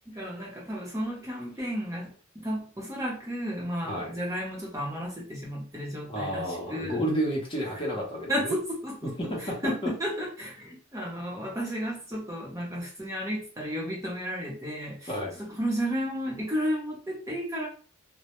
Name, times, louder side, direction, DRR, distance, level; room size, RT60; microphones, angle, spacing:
voice 1, 0.1-7.0 8.3-15.1 15.4-17.7, equal, 15° right, -4 dB, 0.6 m, -33 dB
voice 2, 3.8-4.2 6.1-8.6 9.0-9.6 9.8-9.9 15.1-15.4, equal, 25° left, -3 dB, 0.7 m, -31 dB
2.1 x 2.1 x 2.8 m, 0.40 s
head